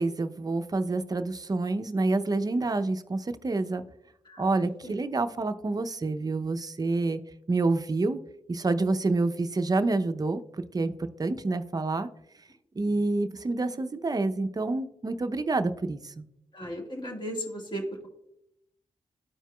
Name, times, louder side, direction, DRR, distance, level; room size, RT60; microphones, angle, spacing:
voice 1, 0.0-3.8 4.4-7.2 7.5-8.2 8.5-10.4 10.7-12.1 12.8-16.2, right 3 dB, 30° right, 9 dB, 0.6 m, -28 dB
voice 2, 16.5-18.1, equal, 40° left, 1 dB, 1.8 m, -36 dB
13.0 x 4.6 x 2.3 m, 0.80 s
cardioid pair, 65°, 12 cm